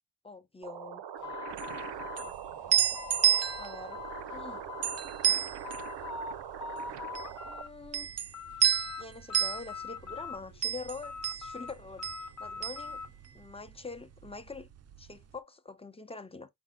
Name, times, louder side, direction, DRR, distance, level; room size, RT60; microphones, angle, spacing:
voice 1, 0.2-1.0 2.2-2.4 2.9-4.1 4.3-4.6 7.4-8.1 9.0-12.1 12.4-13.0 13.3-14.7 15.0-16.5, left 4 dB, 15° left, 0.5 m, -45 dB
sound 1, 0.6-7.6, right 9 dB, 90° right, 0.6 m, -42 dB
sound 2, 1.2-3.7 3.9-5.0 5.4-6.3 6.6-7.7 8.0-9.0 9.3-10.6 11.0-13.1, left 6 dB, 45° left, 0.8 m, -42 dB
sound 3, 1.5-13.8 14.0-15.1, right 9 dB, 40° right, 0.4 m, -31 dB
5.3 x 2.2 x 3.6 m
wide cardioid pair, 105°, 41 cm